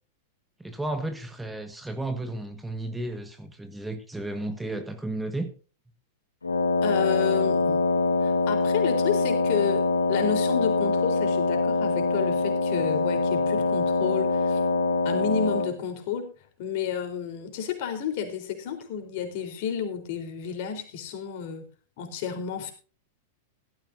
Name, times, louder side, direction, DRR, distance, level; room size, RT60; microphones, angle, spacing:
voice 1, 0.6-5.5, right 2 dB, 5° right, 7 dB, 1.6 m, -33 dB
Wind instrument woodwind instrument, 6.4-15.8, left 3 dB, 85° left, 1.4 m, -24 dB
voice 2, 6.8-7.8 8.2-14.6 15.0-16.3 16.6-21.7 22.0-22.7, left 8 dB, 55° left, 6 dB, 3.9 m, -31 dB
16.5 x 14.0 x 2.7 m, 0.36 s
figure-of-eight pair, 95°, 0 cm